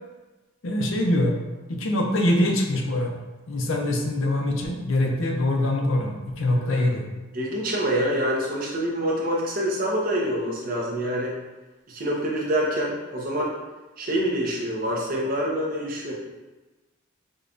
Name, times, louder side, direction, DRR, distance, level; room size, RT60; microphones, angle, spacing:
voice 1, 0.6-1.4 1.7-3.1 3.5-7.0, left 1 dB, 75° left, 1 dB, 0.6 m, -23 dB
voice 2, 7.3-11.3 11.9-13.5 14.0-16.1, equal, 40° right, -3 dB, 0.7 m, -26 dB
5.1 x 2.3 x 2.6 m, 1.2 s
head